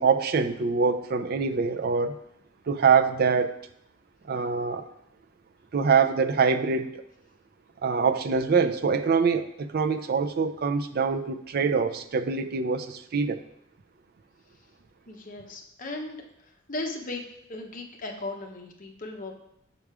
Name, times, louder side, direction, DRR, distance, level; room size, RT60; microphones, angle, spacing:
voice 1, 0.0-2.2 2.7-3.6 4.3-4.9 5.7-6.9 7.8-13.4, right 5 dB, 45° right, 7 dB, 0.4 m, -24 dB
voice 2, 15.1-16.2 16.7-17.2 17.5-19.3, left 2 dB, 40° left, 2 dB, 0.9 m, -36 dB
6.7 x 4.9 x 4.8 m, 0.78 s
head